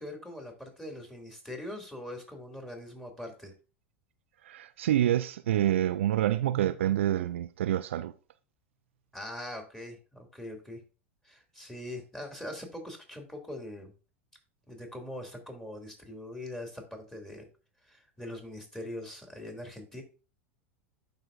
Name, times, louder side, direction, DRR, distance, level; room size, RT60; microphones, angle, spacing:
voice 1, 0.0-3.5 9.1-10.8 11.2-13.9 14.7-17.5 17.8-20.0, left 1 dB, 5° left, 2.5 m, -42 dB
voice 2, 4.4-8.1, right 12 dB, 75° right, 0.4 m, -27 dB
12.0 x 4.5 x 2.5 m
hypercardioid pair, 90°, 7 cm